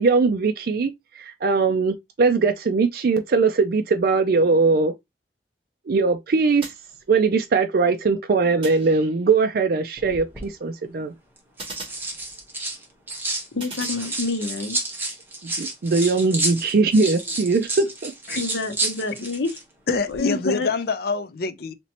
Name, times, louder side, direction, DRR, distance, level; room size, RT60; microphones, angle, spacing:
voice 1, 0.0-4.9 5.9-6.7 7.1-11.1 15.4-18.1, right 4 dB, 55° right, 0.4 m, -21 dB
sound 1, 6.6-7.5 8.6-9.5 11.6-12.7 13.6-14.7, right 2 dB, 30° right, 2.3 m, -41 dB
sound 2, 10.0-10.5 11.4-13.5 13.7-19.6 19.9-20.2, right 2 dB, 10° right, 1.0 m, -30 dB
voice 2, 13.5-14.8 18.3-19.6 20.1-20.7, left 3 dB, 90° left, 0.8 m, -27 dB
voice 3, 19.9-21.7, left 4 dB, 55° left, 0.5 m, -25 dB
4.3 x 3.0 x 2.8 m
head